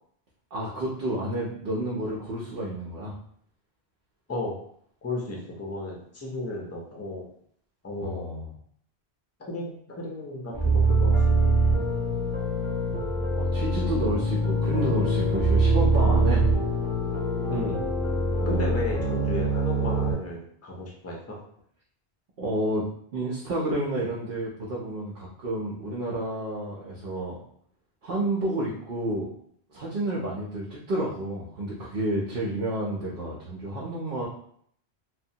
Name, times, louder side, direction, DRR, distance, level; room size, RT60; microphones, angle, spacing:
voice 1, 0.5-3.1 8.0-8.5 13.3-16.4 18.4-18.9 22.4-22.9 23.1-27.4 28.0-29.3 29.7-34.3, right 1 dB, 60° right, -5 dB, 0.8 m, -30 dB
voice 2, 5.0-7.3 7.8-8.3 9.4-11.6 17.5-17.8 18.4-21.4, left 1 dB, 20° left, -2 dB, 0.4 m, -34 dB
sound 1, 10.5-20.1, right 2 dB, 10° right, 0.8 m, -24 dB
3.0 x 2.1 x 2.7 m, 0.64 s
omnidirectional pair, 1.1 m